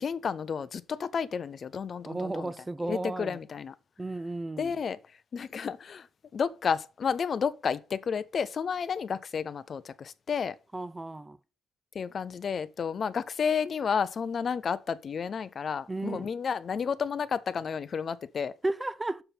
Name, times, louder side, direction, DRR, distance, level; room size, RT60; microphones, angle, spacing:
voice 1, 0.0-2.5 2.8-3.7 4.6-5.0 5.3-6.1 6.3-10.6 11.9-18.5, left 6 dB, 50° left, 0.5 m, -31 dB
voice 2, 2.0-3.4 4.0-4.7 10.7-11.4 15.9-16.3 18.6-19.2, right 2 dB, 15° right, 0.5 m, -33 dB
6.7 x 5.7 x 4.1 m
cardioid pair, 90°, 0 cm